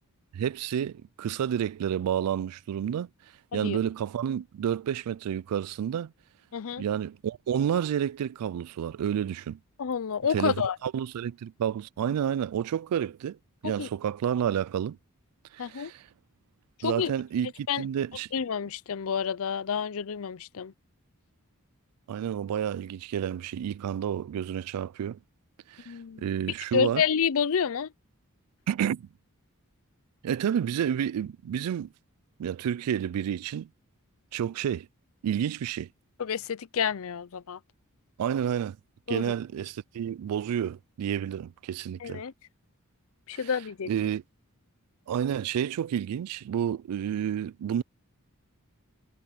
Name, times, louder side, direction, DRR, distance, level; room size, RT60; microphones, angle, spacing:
voice 1, 0.3-3.1 3.5-6.1 6.8-9.6 10.3-13.4 13.6-15.0 15.5-16.1 16.8-18.3 22.1-25.2 25.7-25.9 26.2-27.0 28.7-29.1 30.2-31.9 32.4-33.7 34.3-34.9 35.2-35.9 38.2-38.8 39.1-42.2 43.3-43.5 43.9-44.2 45.1-47.8, right 9 dB, 85° right, 0.3 m, -30 dB
voice 2, 6.5-6.8 9.8-10.8 13.8-13.9 15.6-15.9 16.8-17.1 17.7-17.8 18.3-20.7 25.9-26.2 26.7-27.9 36.2-37.6 39.1-39.3 42.0-42.3 43.3-43.9, left 7 dB, 65° left, 0.5 m, -29 dB
head